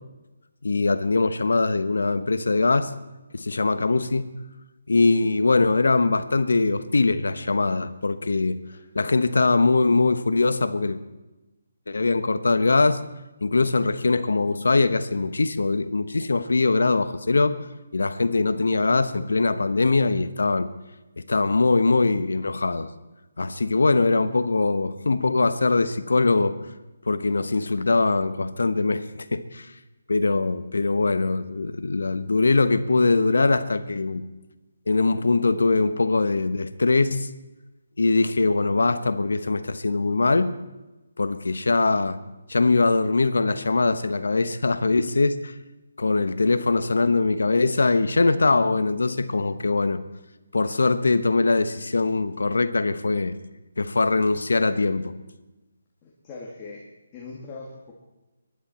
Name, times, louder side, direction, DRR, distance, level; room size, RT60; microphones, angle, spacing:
voice 1, 0.6-2.9 3.3-4.3 4.9-8.6 8.9-11.0 11.9-13.0 13.4-17.5 17.9-20.7 21.2-22.9 23.4-26.5 27.1-29.7 30.1-34.2 34.9-37.3 38.0-40.5 41.2-42.2 42.5-45.5 46.0-50.0 50.5-53.3 53.8-55.1, left 3 dB, 80° left, 12 dB, 1.1 m, -22 dB
voice 2, 56.0-56.8 57.1-57.9, left 3 dB, 20° left, -4 dB, 2.3 m, -40 dB
23.5 x 11.0 x 4.4 m, 1.1 s
figure-of-eight pair, 155°, 0 cm